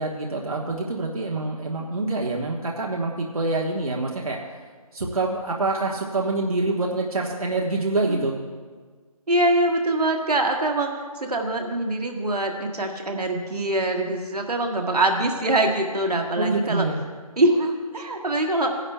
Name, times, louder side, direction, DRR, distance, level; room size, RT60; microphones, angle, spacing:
voice 1, 0.0-4.4 4.9-8.3 16.4-17.0, right 2 dB, 65° right, -2 dB, 1.3 m, -26 dB
voice 2, 9.3-10.9 11.1-16.9 17.4-18.7, right 1 dB, 85° right, 3 dB, 1.5 m, -23 dB
17.0 x 10.5 x 2.3 m, 1.5 s
figure-of-eight pair, 180°, 19 cm